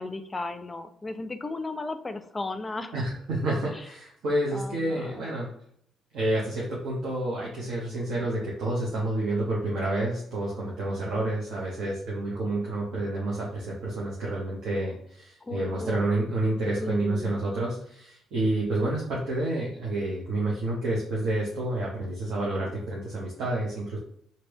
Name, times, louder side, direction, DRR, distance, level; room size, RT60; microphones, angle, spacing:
voice 1, 0.0-2.9 4.5-5.3 15.4-16.1 16.8-17.3, left 2 dB, 25° left, 10 dB, 0.4 m, -35 dB
voice 2, 2.9-5.5 6.1-24.0, right 2 dB, 65° right, -4 dB, 0.8 m, -29 dB
3.0 x 2.7 x 2.9 m, 0.68 s
hypercardioid pair, 45°, 0 cm